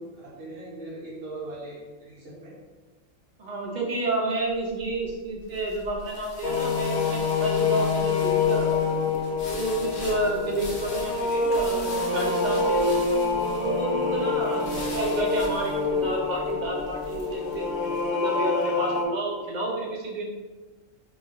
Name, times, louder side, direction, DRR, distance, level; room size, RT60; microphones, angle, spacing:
voice 1, 0.0-2.5 10.5-11.0 14.4-15.1, right 2 dB, 75° right, -7 dB, 1.3 m, -41 dB
voice 2, 3.4-9.0 9.5-13.0 13.5-20.3, right 1 dB, 50° right, -1 dB, 0.6 m, -30 dB
sound 1, 4.5-17.8, left 1 dB, 50° left, 0.8 m, -42 dB
sound 2, 6.4-19.0, left 4 dB, 85° left, 1.0 m, -26 dB
3.0 x 2.6 x 3.7 m, 1.2 s
omnidirectional pair, 1.4 m